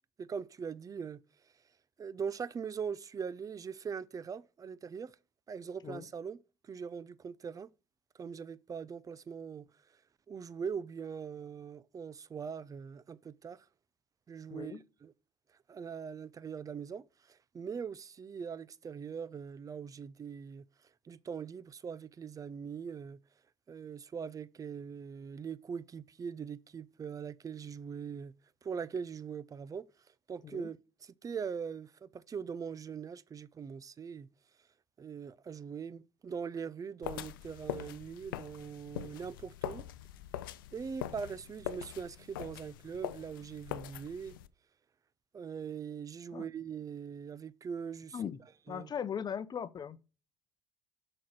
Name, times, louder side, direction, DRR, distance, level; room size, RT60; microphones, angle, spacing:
voice 1, 0.2-1.2 2.0-5.2 5.5-6.4 6.6-7.7 8.2-9.7 10.3-13.7 14.3-15.1 15.7-20.6 21.0-23.2 23.7-28.3 28.6-29.9 30.3-30.8 31.0-34.3 35.0-39.9 40.7-44.3 45.3-48.2 48.7-48.9, right 6 dB, 30° right, 0.6 m, -41 dB
voice 2, 14.5-14.8 30.4-30.7 46.3-46.5 48.1-48.4 48.7-50.0, left 8 dB, 40° left, 0.8 m, -38 dB
sound 1, 37.0-44.5, left 13 dB, 90° left, 0.4 m, -43 dB
6.3 x 4.3 x 6.2 m
hypercardioid pair, 70°, 11 cm